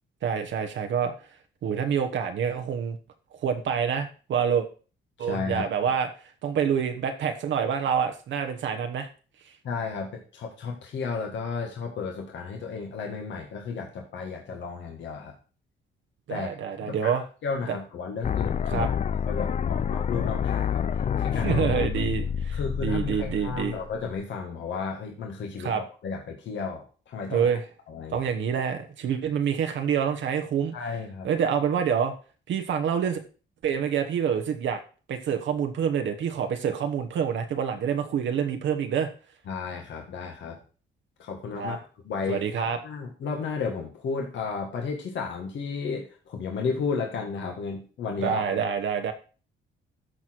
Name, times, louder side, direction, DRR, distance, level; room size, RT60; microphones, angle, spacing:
voice 1, 0.2-1.1 1.6-3.0 3.4-4.6 5.2-6.1 6.4-9.1 16.3-17.2 17.7-17.8 18.7-18.9 21.4-23.8 25.6-25.8 27.3-27.6 28.1-30.7 31.2-32.1 32.5-33.2 33.6-34.8 35.1-39.1 41.6-41.8 42.3-42.8 48.2-49.1, right 7 dB, 70° right, 6 dB, 1.2 m, -27 dB
voice 2, 5.2-5.7 9.6-15.3 16.3-17.1 17.4-20.8 21.2-21.6 21.9-22.0 22.5-27.5 27.9-28.3 30.7-31.3 39.5-40.6 41.2-41.8 42.0-48.6, left 5 dB, 70° left, 1 dB, 1.8 m, -33 dB
sound 1, 18.2-24.2, left 8 dB, 35° left, 0.4 m, -28 dB
12.5 x 4.3 x 4.6 m, 0.37 s
cardioid pair, 90°, 20 cm